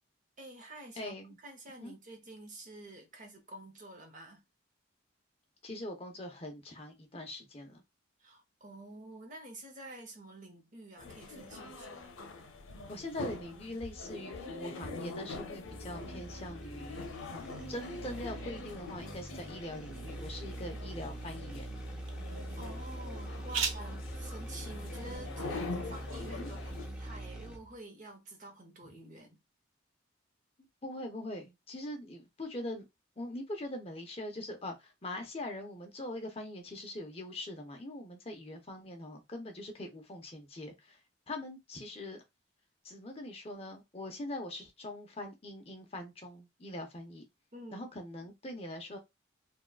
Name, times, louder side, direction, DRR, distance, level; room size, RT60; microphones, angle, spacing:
voice 1, 0.4-1.1 1.4-4.4 8.2-12.1 22.3-29.4 47.5-47.9, right 1 dB, 40° right, 0.8 m, -49 dB
voice 2, 1.0-1.4 1.8-1.9 5.6-7.8 12.9-21.7 26.3-26.5 30.8-32.9 33.2-41.0 41.3-42.2 42.8-47.2 47.7-49.0, left 1 dB, 30° left, 0.6 m, -42 dB
sound 1, 11.0-26.9, left 3 dB, 85° left, 0.7 m, -44 dB
sound 2, 15.6-27.7, right 1 dB, 5° right, 0.7 m, -43 dB
sound 3, 19.5-27.0, right 6 dB, 75° right, 0.6 m, -44 dB
3.5 x 2.3 x 2.4 m
head